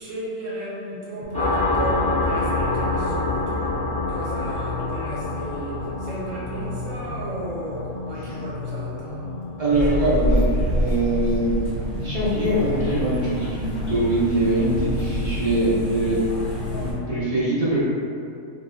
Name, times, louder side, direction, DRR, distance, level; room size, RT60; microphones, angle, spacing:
voice 1, 0.0-9.4, right 2 dB, 70° right, -6 dB, 1.2 m, -34 dB
sound 1, 1.2-17.2, left 3 dB, 85° left, 0.4 m, -35 dB
sound 2, 1.3-10.6, left 2 dB, 10° left, 0.7 m, -27 dB
voice 2, 9.6-11.7 12.0-16.2 16.7-17.8, right 1 dB, 45° right, -10 dB, 0.5 m, -23 dB
sound 3, 9.7-16.9, equal, 70° left, 1.1 m, -27 dB
2.9 x 2.1 x 3.6 m, 2.5 s
omnidirectional pair, 1.4 m